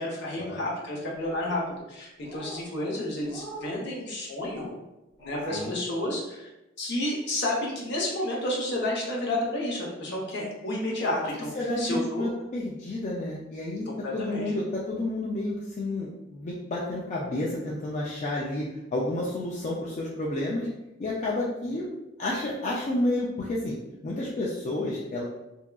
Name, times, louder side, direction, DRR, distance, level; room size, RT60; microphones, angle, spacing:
voice 1, 0.0-1.6 1.9-4.7 5.2-6.5 6.8-11.5 11.8-12.3 13.9-14.5, left 1 dB, 60° left, -3 dB, 0.7 m, -31 dB
sound 1, 1.1-1.7 2.2-2.6 3.2-3.8 4.4-4.7 5.2-5.7, right 1 dB, 20° left, 1.1 m, -42 dB
voice 2, 11.6-18.7 18.9-20.7 21.0-21.9 22.2-23.8 24.0-25.3, left 1 dB, 35° left, -5 dB, 0.3 m, -30 dB
2.7 x 2.3 x 2.2 m, 0.95 s
head